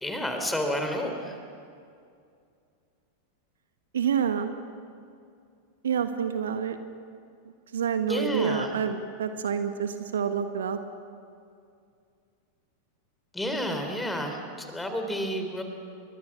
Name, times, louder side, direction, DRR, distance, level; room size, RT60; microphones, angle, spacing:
voice 1, 0.0-1.3 8.1-8.7 13.3-15.6, equal, 5° left, 5 dB, 3.8 m, -30 dB
voice 2, 3.9-4.5 5.8-6.8 7.7-10.8, right 7 dB, 65° right, 9 dB, 1.3 m, -28 dB
30.0 x 23.5 x 6.2 m, 2.4 s
figure-of-eight pair, 90°, 0 cm